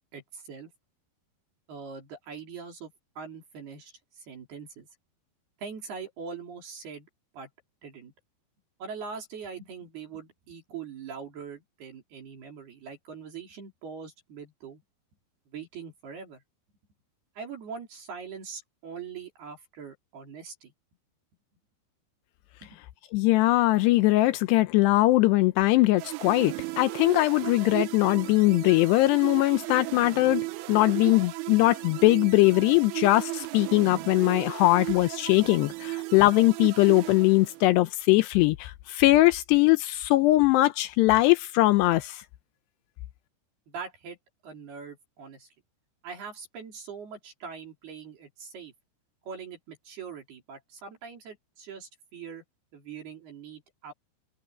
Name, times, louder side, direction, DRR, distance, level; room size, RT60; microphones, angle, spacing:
voice 1, 0.1-0.7 1.7-4.9 5.6-7.1 7.3-7.5 7.8-8.1 8.8-14.8 15.5-16.4 17.4-20.7 22.6-22.8 43.7-44.2 44.4-45.5 46.0-48.7 49.3-52.4 52.7-53.9, right 6 dB, 55° right, 5.7 m, -42 dB
voice 2, 23.1-30.4 30.7-42.2, left 18 dB, 80° left, 2.5 m, -21 dB
sound 1, 26.0-37.9, right 21 dB, 90° right, 2.1 m, -36 dB
omnidirectional pair, 5.4 m